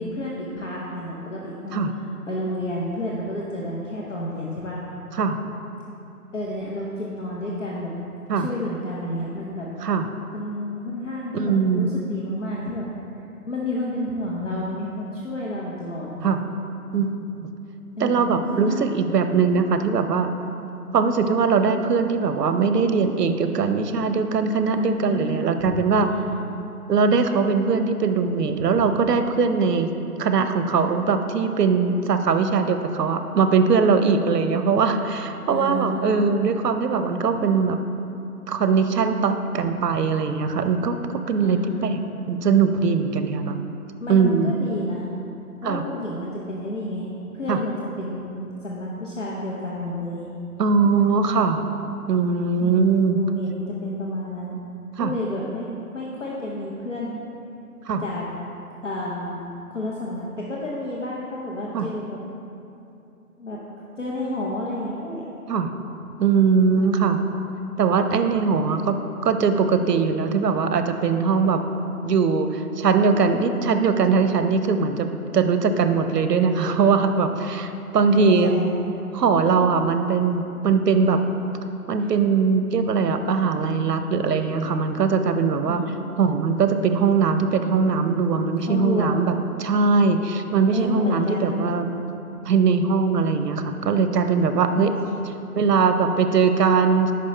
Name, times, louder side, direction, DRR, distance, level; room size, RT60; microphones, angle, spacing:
voice 1, 0.0-4.8 6.3-7.9 8.4-9.7 10.3-12.9 13.5-16.3 18.0-19.0 19.5-19.7 24.6-26.5 28.8-28.9 35.5-36.5 41.4-42.0 44.0-45.1 45.6-47.1 47.3-50.2 52.6-54.6 55.0-55.7 55.9-57.2 57.8-58.3 58.8-59.4 59.7-62.2 63.4-63.6 64.0-65.4 66.8-67.4 78.1-78.8 82.0-82.1 85.7-86.0 88.6-89.2 90.7-91.6 92.3-92.4 94.7-95.3, left 1 dB, 50° left, -4 dB, 0.7 m, -30 dB
voice 2, 11.3-11.9 16.2-16.4 16.9-17.5 18.0-20.3 20.9-26.1 26.9-29.9 30.2-37.8 38.5-41.0 41.3-42.0 42.3-43.6 44.1-44.5 45.6-45.8 47.5-47.6 50.6-51.7 52.1-53.2 55.0-55.1 57.9-58.0 61.7-61.9 65.5-65.7 66.2-67.2 67.8-71.6 72.0-75.1 75.3-78.6 79.1-81.2 81.9-85.8 86.2-89.3 89.6-91.9 92.5-94.9 95.6-97.1, right 5 dB, 85° right, 8 dB, 0.6 m, -21 dB
5.3 x 5.2 x 4.3 m, 2.8 s
hypercardioid pair, 175°, 47 cm